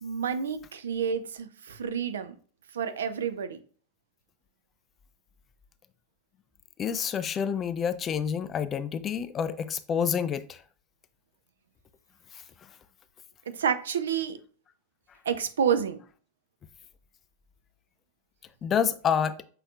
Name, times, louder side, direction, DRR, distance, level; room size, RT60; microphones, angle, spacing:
voice 1, 0.0-2.3 2.7-3.6 13.5-14.4 15.3-16.0, right 7 dB, 65° right, 0.4 m, -29 dB
voice 2, 6.8-10.6 18.6-19.4, left 7 dB, 25° left, 0.3 m, -28 dB
5.7 x 3.0 x 2.4 m
figure-of-eight pair, 90°, 0 cm